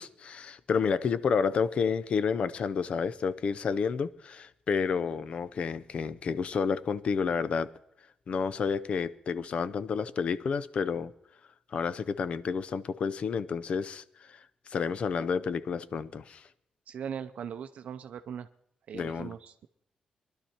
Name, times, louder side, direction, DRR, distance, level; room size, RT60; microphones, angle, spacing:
voice 1, 0.0-7.7 8.3-11.1 11.7-16.5 18.9-19.3, left 6 dB, 50° left, 0.5 m, -30 dB
voice 2, 16.9-18.5 18.9-19.7, right 8 dB, 65° right, 0.6 m, -39 dB
22.5 x 11.5 x 4.3 m
wide cardioid pair, 155°, 2 cm